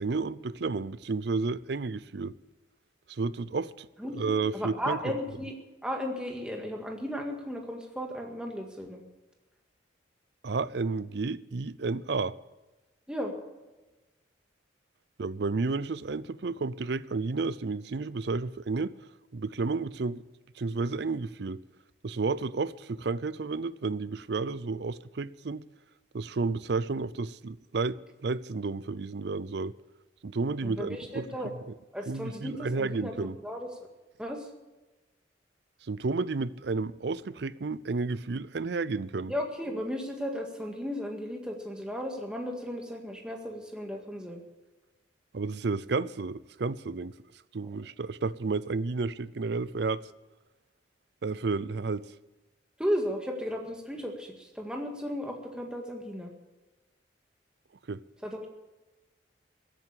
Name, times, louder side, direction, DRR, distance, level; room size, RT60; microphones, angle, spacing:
voice 1, 0.0-2.3 3.1-3.9 4.1-5.0 10.4-12.3 15.2-18.9 19.3-20.2 20.6-21.6 22.0-25.7 26.1-29.7 30.2-31.3 32.1-33.4 35.9-39.3 45.3-47.1 47.5-50.1 51.2-52.1 57.9-58.0, right 4 dB, 60° right, 0.5 m, -31 dB
voice 2, 4.0-5.6 5.8-9.0 13.1-13.3 30.6-31.5 31.9-33.9 34.2-34.5 39.3-44.4 52.8-56.3 58.2-58.5, equal, 5° right, 1.9 m, -35 dB
15.5 x 9.2 x 8.5 m
head